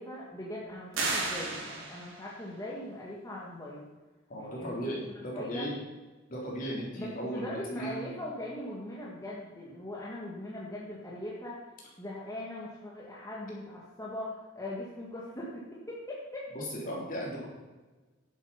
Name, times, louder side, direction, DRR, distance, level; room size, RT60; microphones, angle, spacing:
voice 1, 0.0-3.8 4.4-5.7 7.0-11.7 12.0-16.5, left 1 dB, 15° left, -5 dB, 1.7 m, -40 dB
sound 1, 0.9-2.3, right 3 dB, 85° right, 3.2 m, -33 dB
voice 2, 4.3-5.8 6.3-8.0 16.5-17.5, equal, 45° left, -3 dB, 3.8 m, -36 dB
11.0 x 7.9 x 5.7 m, 1.2 s
head